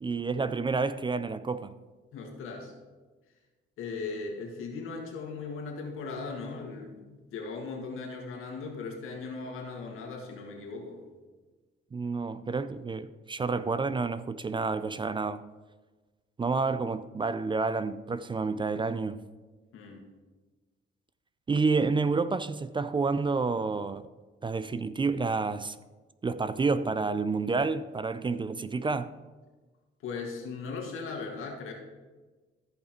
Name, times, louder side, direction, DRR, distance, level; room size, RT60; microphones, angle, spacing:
voice 1, 0.0-1.7 11.9-15.4 16.4-19.3 21.5-24.1 24.4-25.8 26.2-29.1, right 4 dB, 25° right, 0.4 m, -29 dB
voice 2, 2.1-2.7 3.8-11.0 19.7-20.1 30.0-31.7, left 4 dB, 85° left, 1.9 m, -38 dB
14.0 x 5.6 x 4.4 m
cardioid pair, 95°, 21 cm